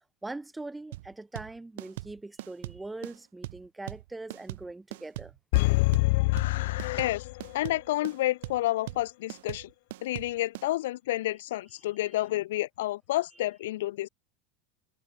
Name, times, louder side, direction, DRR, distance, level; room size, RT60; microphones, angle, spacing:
voice 1, 0.2-5.4, right 2 dB, 5° right, 3.6 m, -41 dB
sound 1, 0.9-10.7, right 18 dB, 80° right, 2.2 m, -41 dB
sound 2, 5.5-7.7 8.0-8.1, left 23 dB, 70° left, 1.0 m, -25 dB
voice 2, 6.3-7.3 7.5-9.7 10.0-14.1, left 16 dB, 90° left, 0.5 m, -30 dB
supercardioid pair, 150°, 0 cm